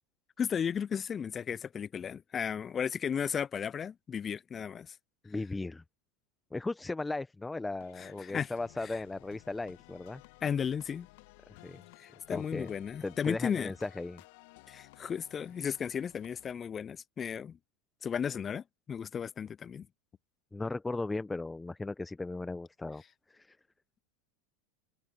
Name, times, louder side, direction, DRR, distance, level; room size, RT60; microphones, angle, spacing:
voice 1, 0.4-4.9 8.0-8.5 10.4-11.1 12.0-13.7 14.7-17.6 18.0-19.9, left 7 dB, 30° left, 0.6 m, -34 dB
voice 2, 5.2-5.8 6.5-10.2 11.6-11.8 12.3-12.7 13.0-14.2 20.5-23.0 23.3-23.6, left 3 dB, 10° left, 1.4 m, -37 dB
sound 1, 7.8-16.5, left 24 dB, 60° left, 2.2 m, -57 dB
hypercardioid pair, 85°, 0 cm